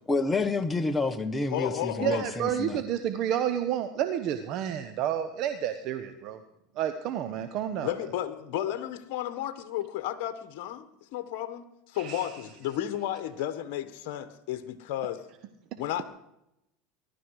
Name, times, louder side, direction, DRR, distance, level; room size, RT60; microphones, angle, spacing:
voice 1, 0.1-2.8, left 3 dB, 15° left, 8 dB, 1.5 m, -29 dB
voice 2, 1.5-2.3 7.8-10.8 11.1-15.2 15.8-16.0, left 12 dB, 65° left, 11 dB, 1.3 m, -33 dB
voice 3, 2.0-6.4 6.8-7.9 12.0-12.3, right 10 dB, 55° right, 10 dB, 1.2 m, -30 dB
20.5 x 12.0 x 4.9 m, 0.85 s
hypercardioid pair, 95°, 0 cm